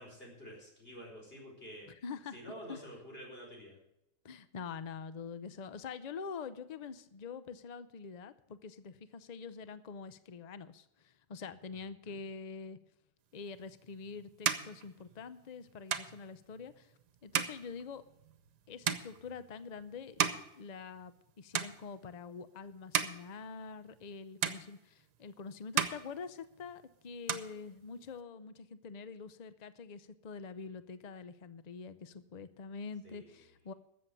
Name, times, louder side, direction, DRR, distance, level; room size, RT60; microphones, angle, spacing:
voice 1, 0.0-1.9 2.3-3.8 12.0-12.2 33.0-33.3, equal, 35° left, -1 dB, 5.0 m, -49 dB
voice 2, 1.9-2.4 2.7-2.8 4.2-12.8 13.3-16.9 17.2-18.0 18.7-20.3 20.6-33.7, left 5 dB, 85° left, 13 dB, 0.3 m, -45 dB
sound 1, 13.6-21.3 21.5-22.2 22.7-24.1 24.4-25.3 25.6-26.8 27.1-28.2, right 8 dB, 85° right, 1.5 m, -37 dB
13.5 x 7.7 x 8.0 m, 0.84 s
omnidirectional pair, 1.7 m